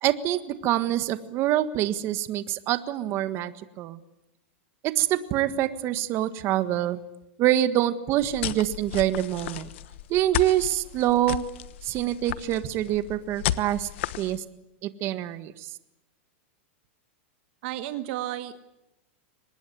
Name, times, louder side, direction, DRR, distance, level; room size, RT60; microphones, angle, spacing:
voice 1, 0.0-4.0 4.8-7.0 7.4-9.7 10.1-11.4 11.8-13.9 14.2-14.4 14.8-15.7, right 13 dB, 40° right, 12 dB, 1.6 m, -25 dB
sound 1, 8.2-14.4, left 14 dB, 65° left, 1.1 m, -34 dB
voice 2, 17.6-18.6, right 14 dB, 55° right, 10 dB, 1.4 m, -32 dB
24.0 x 20.5 x 9.5 m, 0.88 s
hypercardioid pair, 135°, 7 cm